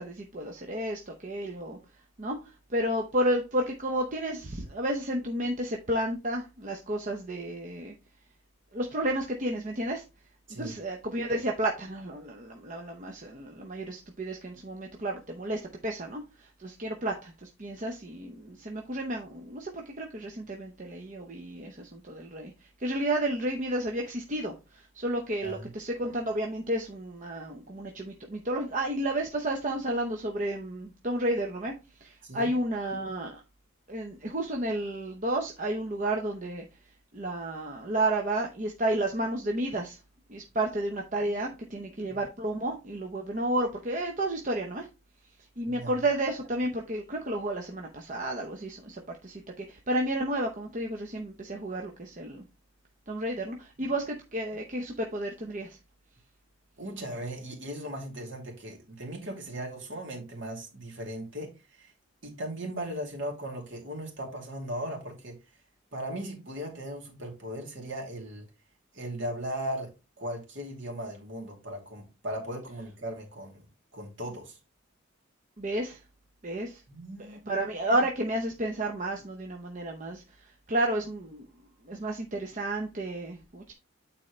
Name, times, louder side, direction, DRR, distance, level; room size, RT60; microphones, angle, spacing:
voice 1, 0.0-1.8 2.2-7.9 8.7-10.0 10.5-22.5 22.8-31.7 32.0-33.4 33.9-36.6 37.1-40.0 40.3-44.9 45.6-52.4 53.1-55.8 75.6-76.0 76.4-76.8 77.2-81.5 81.9-83.7, right 1 dB, 35° right, 0.7 m, -32 dB
voice 2, 56.8-61.5 61.8-61.9 62.2-65.4 65.9-68.4 68.9-69.9 70.2-73.6 73.9-74.6 76.9-77.7, right 1 dB, 60° right, 2.6 m, -38 dB
9.0 x 4.2 x 3.2 m
head